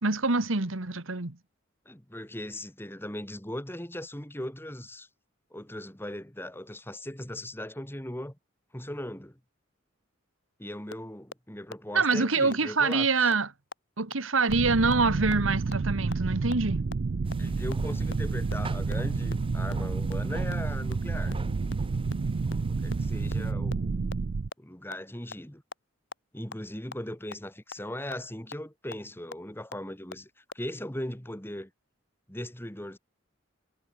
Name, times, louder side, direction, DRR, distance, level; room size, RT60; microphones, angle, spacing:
voice 1, 0.0-1.4 11.9-13.5 14.0-16.9, right 4 dB, 80° right, 1.9 m, -25 dB
voice 2, 1.9-5.1 5.5-8.4 8.7-9.4 10.6-13.3 17.4-21.4 22.7-24.3 24.6-25.6 26.3-31.7 32.3-33.0, left 1 dB, 10° left, 2.6 m, -39 dB
sound 1, 10.9-11.0 11.3-11.4 11.7-11.8 12.1-12.2 12.5-12.6 12.9-13.0 13.3-13.4 13.7-13.8 14.1-14.2 14.5-14.6 14.9-15.0 15.3-15.4 15.7-15.8 16.1-16.2 16.5-16.6 16.9-17.0 17.3-17.4 17.7-17.8 18.1-18.2 18.5-18.6 18.9-19.0 19.3-19.4 19.7-19.8 20.1-20.2 20.5-20.6 20.9-21.0 21.3-21.4 21.7-21.8 22.1-22.2 22.5-22.6 22.9-23.0 23.3-23.4 23.7-23.8 24.1-24.2 24.5-24.6 24.9-25.0 25.3-25.4 25.7-25.8 26.1-26.2 26.5-26.6 26.9-27.0 27.3-27.4 27.7-27.8 28.1-28.2 28.5-28.6 28.9-29.0 29.3-29.4 29.7-29.8 30.1-30.2 30.5-30.6, left 4 dB, 60° left, 1.5 m, -38 dB
sound 2, 14.5-24.5, right 4 dB, 50° right, 0.4 m, -30 dB
sound 3, 17.2-23.5, right 1 dB, 25° right, 1.7 m, -42 dB
head